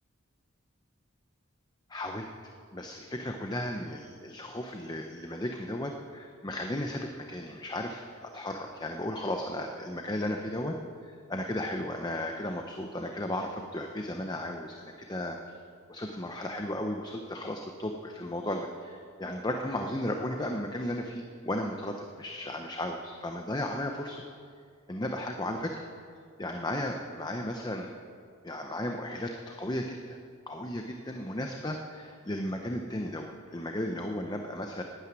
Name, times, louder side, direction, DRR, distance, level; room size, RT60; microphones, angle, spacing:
voice 1, 1.9-2.3 2.7-10.8 11.0-15.6 15.9-24.2 24.9-25.9 26.4-27.9 28.4-30.2 30.5-34.8, left 1 dB, 20° left, 3 dB, 0.7 m, -35 dB
12.0 x 9.1 x 9.6 m, 2.2 s
head